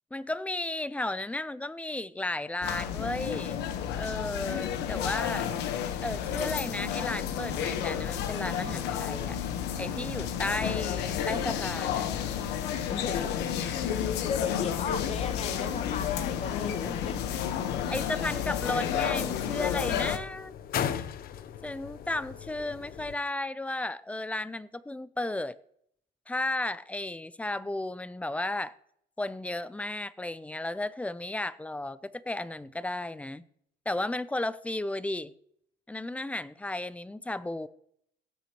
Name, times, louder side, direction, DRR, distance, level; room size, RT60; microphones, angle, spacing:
voice 1, 0.1-3.6 3.9-5.5 6.0-9.4 9.8-12.0 17.9-20.6 21.6-25.6 26.3-28.7 29.2-33.4 33.9-35.3 35.9-37.7, left 2 dB, 10° left, 0.5 m, -34 dB
sound 1, 2.6-20.2, left 9 dB, 85° left, 1.1 m, -31 dB
voice 2, 12.9-13.5 13.9-17.2, left 6 dB, 40° left, 1.0 m, -36 dB
sound 2, 15.8-23.1, left 9 dB, 60° left, 0.8 m, -39 dB
18.0 x 8.2 x 3.0 m
cardioid pair, 110°, 17 cm